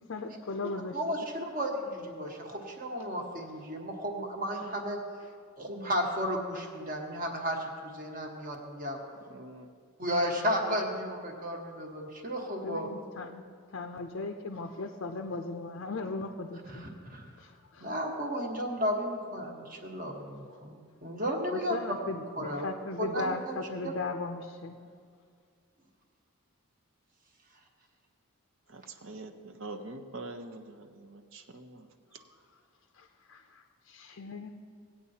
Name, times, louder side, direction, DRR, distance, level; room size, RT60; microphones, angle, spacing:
voice 1, 0.1-1.0 4.5-4.7 12.6-13.5 13.7-16.8 17.4-17.9 21.5-24.8 32.2-32.4 32.9-34.5, left 3 dB, 55° left, 4 dB, 0.5 m, -38 dB
voice 2, 0.6-5.0 5.6-9.0 10.0-12.9 16.7-17.3 17.8-21.8 22.1-22.7 23.0-23.6 23.8-23.9, equal, 40° right, 1 dB, 1.3 m, -34 dB
voice 3, 9.3-9.7 28.7-31.9, right 2 dB, 60° right, 6 dB, 0.7 m, -44 dB
18.0 x 8.8 x 2.8 m, 2.1 s
head